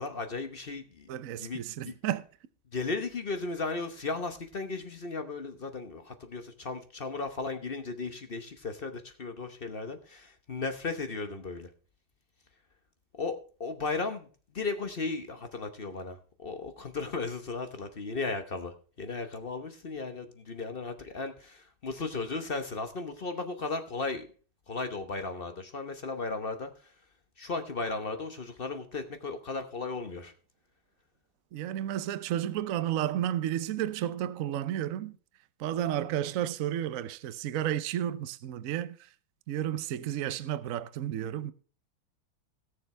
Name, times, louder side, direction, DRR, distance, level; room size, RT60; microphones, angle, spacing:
voice 1, 0.0-1.1 1.4-1.9 2.7-11.7 13.1-14.3 14.5-24.3 24.7-26.9 27.4-30.3, left 3 dB, 40° left, 0.8 m, -35 dB
voice 2, 1.1-2.2 31.5-35.2 35.6-39.0 39.5-41.5, right 11 dB, 75° right, 0.7 m, -32 dB
17.5 x 6.8 x 3.3 m
omnidirectional pair, 2.3 m